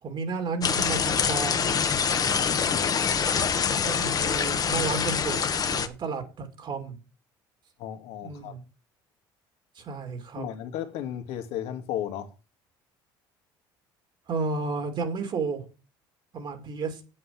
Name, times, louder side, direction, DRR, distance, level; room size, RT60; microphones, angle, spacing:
voice 1, 0.0-1.7 3.7-7.0 8.2-8.6 9.7-10.4 14.3-15.6 16.3-17.0, right 4 dB, 50° right, 2.7 m, -32 dB
sound 1, 0.6-5.9, left 6 dB, 35° left, 1.4 m, -25 dB
voice 2, 2.3-3.2 7.8-8.6 10.4-12.3, left 10 dB, 75° left, 2.0 m, -35 dB
8.0 x 7.9 x 5.9 m
supercardioid pair, 85°, 11 cm